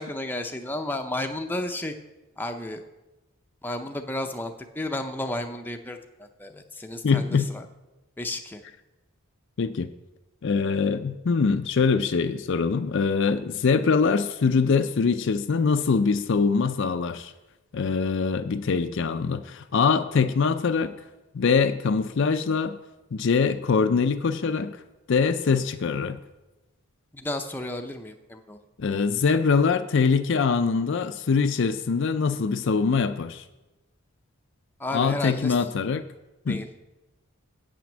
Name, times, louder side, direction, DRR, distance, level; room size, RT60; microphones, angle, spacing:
voice 1, 0.0-1.9 2.4-2.8 3.6-7.7 8.2-8.6 27.1-28.6 34.8-35.6 36.5-36.7, left 1 dB, 10° left, 5 dB, 0.6 m, -32 dB
voice 2, 7.0-7.5 9.6-9.9 10.4-17.3 17.7-20.9 21.3-22.8 23.1-24.8 25.1-26.2 28.8-33.4 34.9-36.0 36.5-36.6, left 5 dB, 55° left, 10 dB, 0.4 m, -23 dB
8.5 x 6.0 x 7.3 m, 1.0 s
head